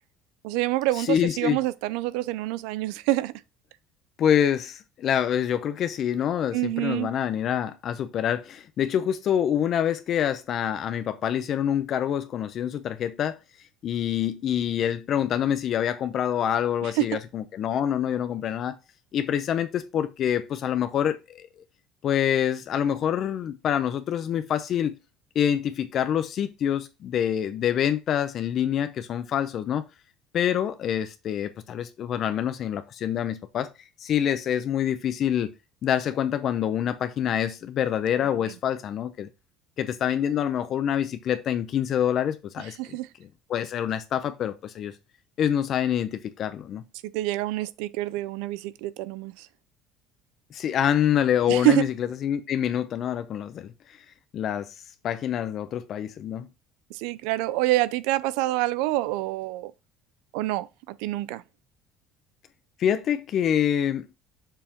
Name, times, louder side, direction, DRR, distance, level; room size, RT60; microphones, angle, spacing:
voice 1, 0.4-3.3 6.5-7.1 16.8-17.2 38.2-38.5 42.8-43.1 47.0-49.5 51.5-51.8 56.9-59.7 60.3-61.4, right 16 dB, 85° right, 0.4 m, -27 dB
voice 2, 1.0-1.6 4.2-13.4 13.8-18.8 19.1-21.5 22.0-25.0 25.3-29.8 30.3-33.7 34.0-35.5 35.8-39.3 39.8-43.0 43.5-44.9 45.4-46.8 50.5-54.0 54.3-54.7 55.0-56.5 62.8-64.1, left 9 dB, 50° left, 0.6 m, -26 dB
6.9 x 5.5 x 2.9 m
cardioid pair, 115°, 0 cm